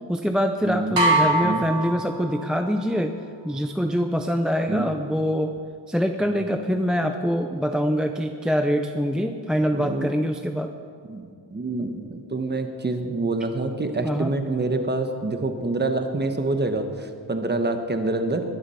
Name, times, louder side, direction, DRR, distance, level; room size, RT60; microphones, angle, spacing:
voice 1, 0.1-3.1 3.4-5.5 5.9-10.7 14.0-14.3, equal, ahead, 5 dB, 0.4 m, -24 dB
voice 2, 0.6-1.0 1.4-1.6 4.7-4.9 6.2-6.5 9.7-10.1 11.1-11.2 11.5-18.4, right 2 dB, 25° right, 6 dB, 1.2 m, -26 dB
sound 1, 1.0-2.7, right 2 dB, 75° right, 3.3 m, -23 dB
21.0 x 11.5 x 5.7 m, 2.3 s
wide cardioid pair, 175°, 44 cm